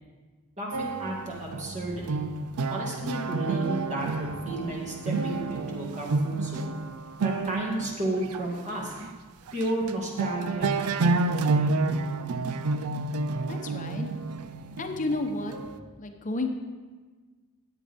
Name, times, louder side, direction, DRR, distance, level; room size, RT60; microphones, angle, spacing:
voice 1, 0.6-2.2 2.7-6.7 7.2-8.9 9.5-11.7, right 1 dB, 35° right, -2 dB, 2.0 m, -33 dB
sound 1, 0.7-8.4 9.0-9.1 9.5-9.9 10.2-15.8, right 3 dB, 75° right, 0.5 m, -29 dB
voice 2, 13.5-14.1 14.8-15.7 16.0-16.5, left 2 dB, 35° left, 5 dB, 0.9 m, -32 dB
13.5 x 8.6 x 3.5 m, 1.4 s
head